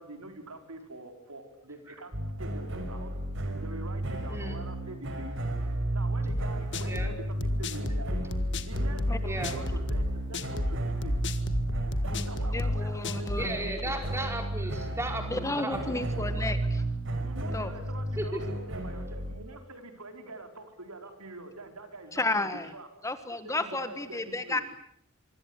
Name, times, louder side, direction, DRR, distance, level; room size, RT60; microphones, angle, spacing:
voice 1, 0.0-3.1 3.6-5.3 5.9-8.2 8.6-11.2 12.0-13.9 15.9-16.6 17.2-22.9 23.4-24.6, right 2 dB, 85° right, 6 dB, 5.0 m, -45 dB
sound 1, 2.1-19.4, right 1 dB, 55° right, 5.9 m, -33 dB
sound 2, 6.3-13.5, left 1 dB, 55° left, 1.8 m, -32 dB
voice 2, 9.2-9.5 13.4-16.1 18.2-18.4, right 1 dB, 10° right, 4 dB, 4.7 m, -35 dB
voice 3, 12.5-13.6 15.3-16.6 17.5-17.7 22.1-22.7 23.0-24.6, left 2 dB, 15° left, 10 dB, 1.4 m, -32 dB
25.5 x 25.0 x 8.3 m, 0.69 s
head